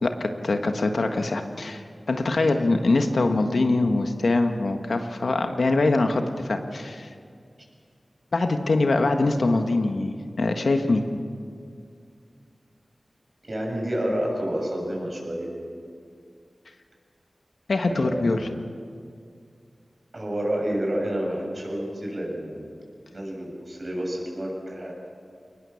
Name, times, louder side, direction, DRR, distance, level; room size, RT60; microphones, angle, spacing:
voice 1, 0.0-7.1 8.3-11.0 17.7-18.5, left 2 dB, 80° left, 5 dB, 1.5 m, -23 dB
voice 2, 13.5-15.5 17.9-18.3 20.1-22.7 23.1-24.9, equal, 50° right, -1 dB, 7.2 m, -29 dB
22.5 x 19.5 x 7.2 m, 2.2 s
cardioid pair, 45°, 0 cm